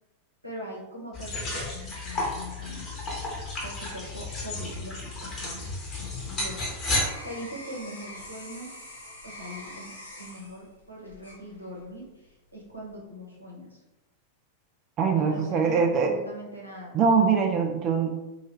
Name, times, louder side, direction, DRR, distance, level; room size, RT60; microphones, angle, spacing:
voice 1, 0.4-2.9 3.6-5.6 6.0-6.6 7.2-8.7 9.2-13.8 15.1-16.9, equal, 90° right, -3 dB, 0.8 m, -41 dB
sound 1, 1.1-7.0, left 2 dB, 30° left, 1.1 m, -32 dB
sound 2, 6.1-12.0 12.5-13.0, left 1 dB, 80° left, 1.1 m, -45 dB
voice 2, 15.0-16.1 16.9-18.1, right 5 dB, 35° right, 3 dB, 0.3 m, -22 dB
2.7 x 2.6 x 3.3 m, 1.0 s
figure-of-eight pair, 90°, 0 cm